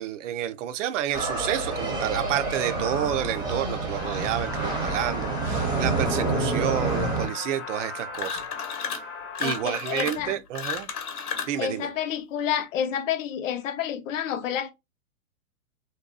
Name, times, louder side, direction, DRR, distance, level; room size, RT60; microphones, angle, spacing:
voice 1, 0.0-8.4 9.4-10.9 11.5-11.9, right 11 dB, 60° right, 0.5 m, -29 dB
sound 1, 1.1-7.3, right 3 dB, 10° right, 0.6 m, -28 dB
sound 2, 4.0-9.6, left 5 dB, 25° left, 0.9 m, -37 dB
sound 3, 8.1-9.1 9.3-11.6, left 7 dB, 90° left, 0.9 m, -33 dB
voice 2, 9.4-10.4 11.6-14.7, left 9 dB, 60° left, 0.6 m, -29 dB
2.7 x 2.2 x 2.3 m
hypercardioid pair, 135°, 44 cm